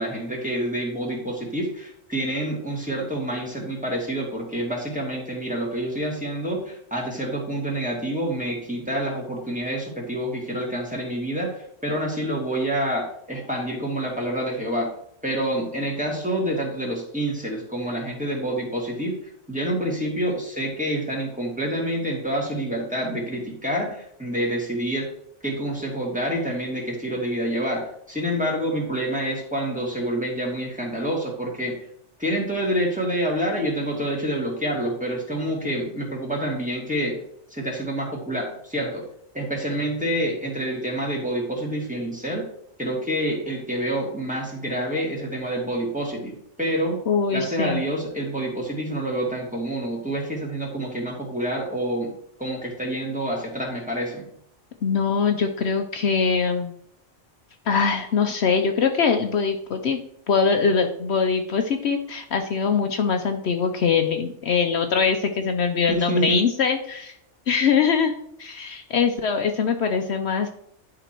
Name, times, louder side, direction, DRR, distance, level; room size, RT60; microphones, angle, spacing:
voice 1, 0.0-11.5 11.8-14.9 15.2-19.1 19.5-25.1 25.4-31.7 32.2-37.2 37.5-39.0 39.3-42.4 42.8-47.0 47.3-52.1 52.4-54.3 65.9-66.4, right 1 dB, 5° right, -2 dB, 2.4 m, -27 dB
voice 2, 47.1-47.8 54.8-56.7 57.7-60.0 60.3-67.1 67.5-68.1 68.4-70.5, left 5 dB, 65° left, 6 dB, 1.0 m, -22 dB
11.0 x 5.0 x 4.5 m, 0.71 s
omnidirectional pair, 1.2 m